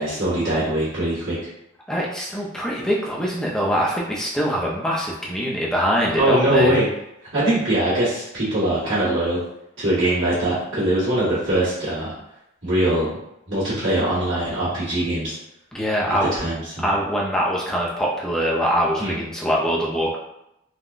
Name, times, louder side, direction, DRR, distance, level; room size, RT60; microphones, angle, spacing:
voice 1, 0.0-1.3 6.2-6.9 7.3-9.4 9.8-12.1 12.6-13.1 13.5-15.4 16.1-16.9 19.0-19.2, right 1 dB, 75° right, -14 dB, 1.5 m, -22 dB
voice 2, 1.9-6.7 15.7-16.3 16.8-20.2, equal, 5° left, -4 dB, 0.5 m, -23 dB
3.6 x 2.2 x 2.4 m, 0.83 s
head